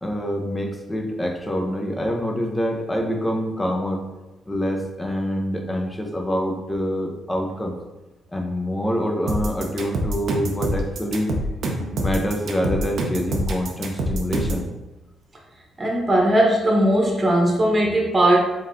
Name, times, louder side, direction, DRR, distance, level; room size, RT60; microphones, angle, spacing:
voice 1, 0.0-4.0 4.5-7.8 8.3-11.3 11.9-14.7, equal, 15° left, 2 dB, 0.7 m, -26 dB
sound 1, 9.3-14.7, right 1 dB, 70° right, 0.6 m, -25 dB
voice 2, 15.8-18.4, right 1 dB, 25° right, -1 dB, 1.0 m, -18 dB
4.0 x 3.7 x 2.6 m, 1.0 s
cardioid pair, 90°, 0 cm